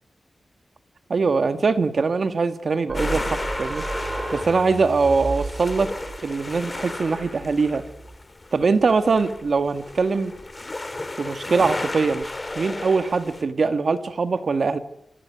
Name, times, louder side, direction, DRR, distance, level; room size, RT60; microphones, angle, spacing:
voice 1, 1.1-3.8 4.3-5.9 6.2-7.9 8.5-10.3 11.2-12.3 12.6-14.8, right 4 dB, 65° right, 1.8 m, -22 dB
sound 1, 2.9-13.4, left 2 dB, 30° left, 2.3 m, -34 dB
sound 2, 2.9-8.2, right 2 dB, 40° right, 4.7 m, -33 dB
25.5 x 16.0 x 9.6 m
cardioid pair, 65°, 0 cm